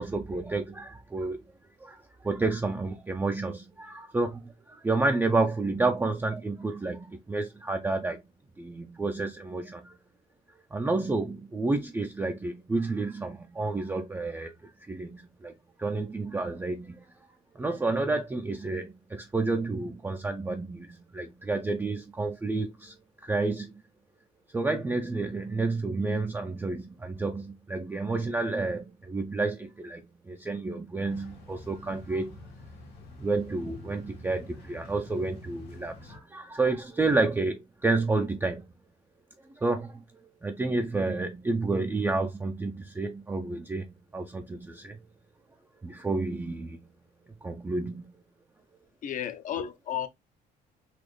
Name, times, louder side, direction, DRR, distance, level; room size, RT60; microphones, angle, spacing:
voice 1, 0.0-1.4 1.8-8.2 8.6-10.0 10.7-15.5 15.8-17.1 17.5-23.0 23.2-23.7 24.5-32.4 33.2-38.7 39.4-40.0 40.4-45.0 45.8-46.9 47.4-48.1, right 3 dB, 15° right, 0.4 m, -30 dB
sound 1, 31.1-36.2, left 2 dB, 75° left, 1.5 m, -48 dB
voice 2, 49.0-50.1, left 9 dB, 50° left, 0.7 m, -33 dB
4.1 x 2.4 x 3.2 m
cardioid pair, 110°, 17 cm